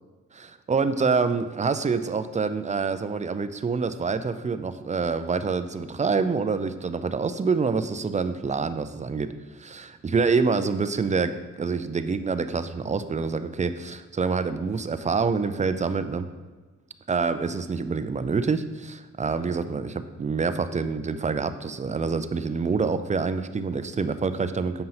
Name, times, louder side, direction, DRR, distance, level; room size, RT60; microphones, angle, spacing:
voice 1, 0.3-9.3 9.6-16.3 17.1-24.8, right 4 dB, 25° right, 11 dB, 0.4 m, -26 dB
7.8 x 5.3 x 2.9 m, 1.3 s
cardioid pair, 60°, 29 cm